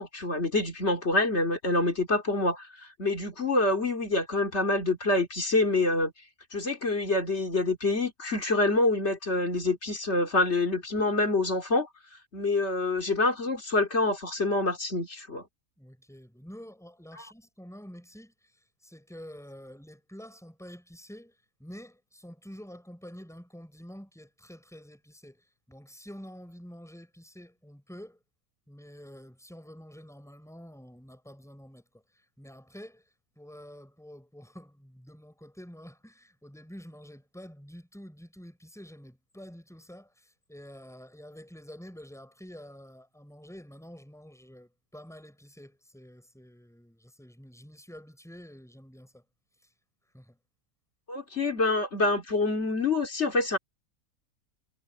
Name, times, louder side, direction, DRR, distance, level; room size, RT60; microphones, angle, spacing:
voice 1, 0.0-6.1 6.5-11.9 12.3-15.4 51.1-53.6, left 2 dB, 50° left, 2.9 m, -26 dB
voice 2, 15.8-28.2 28.7-33.0 33.4-49.2 49.6-49.7 50.1-50.4, equal, ahead, 7.1 m, -48 dB
omnidirectional pair, 1.5 m